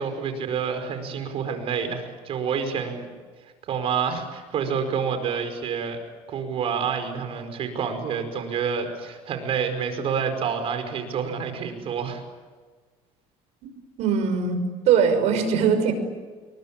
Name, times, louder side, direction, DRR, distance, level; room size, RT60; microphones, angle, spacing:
voice 1, 0.0-3.1 3.4-6.0 6.3-12.2, right 6 dB, 55° right, 8 dB, 5.2 m, -28 dB
voice 2, 14.0-15.9, right 6 dB, 70° right, 7 dB, 6.1 m, -21 dB
28.5 x 23.0 x 8.9 m, 1.4 s
cardioid pair, 120°, 12 cm